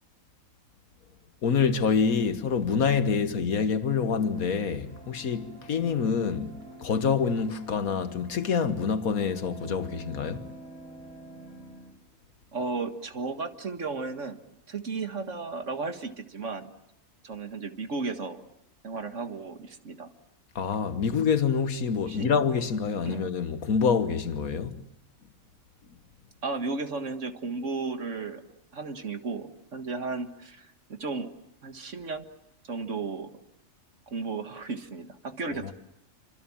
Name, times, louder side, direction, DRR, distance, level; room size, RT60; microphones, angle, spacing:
voice 1, 1.4-10.5 20.6-24.9 35.5-35.7, left 6 dB, 85° left, 1.8 m, -26 dB
sound 1, 4.0-11.9, right 1 dB, 30° left, 4.5 m, -47 dB
voice 2, 12.5-14.4 14.7-16.7 17.2-18.4 18.8-20.1 22.1-22.3 23.0-23.2 26.4-28.4 28.7-31.3 31.6-32.3 32.7-33.3 34.1-35.7, right 4 dB, 60° right, 2.0 m, -34 dB
28.0 x 25.5 x 7.2 m
omnidirectional pair, 1.5 m